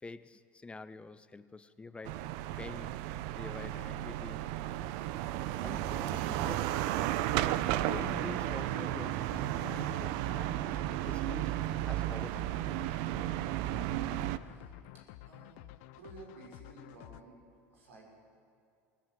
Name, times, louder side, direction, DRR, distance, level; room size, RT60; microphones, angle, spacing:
voice 1, 0.0-2.2 2.6-4.5 4.9-5.1 5.6-6.7 7.0-11.5 11.8-12.6, left 3 dB, 15° left, 12 dB, 0.9 m, -47 dB
sound 1, 2.0-14.4, right 14 dB, 70° right, 0.7 m, -34 dB
sound 2, 7.9-17.2, left 17 dB, 70° left, 0.6 m, -52 dB
voice 2, 14.4-14.7 15.3-15.6 15.9-17.4 17.7-18.0, right 3 dB, 90° right, -1 dB, 5.7 m, -53 dB
20.5 x 17.5 x 7.7 m, 2.4 s
hypercardioid pair, 85°, 7 cm